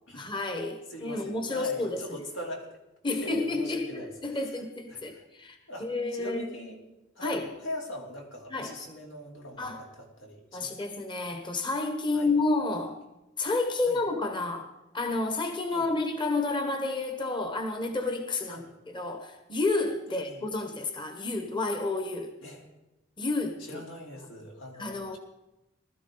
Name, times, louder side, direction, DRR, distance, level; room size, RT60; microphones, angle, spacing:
voice 1, 0.2-2.2 3.0-6.5 7.2-7.5 8.5-8.7 9.6-9.8 10.5-13.0 13.4-22.3 23.2-23.8 24.8-25.2, left 3 dB, 25° left, 6 dB, 1.0 m, -30 dB
voice 2, 0.9-2.7 3.1-4.6 4.9-5.2 5.7-6.8 7.1-10.7 12.1-12.3 13.8-14.0 15.7-15.8 18.5-18.7 20.1-20.4 22.4-22.6 23.6-25.2, left 1 dB, 90° left, 0 dB, 3.3 m, -41 dB
20.5 x 13.0 x 3.8 m, 0.96 s
head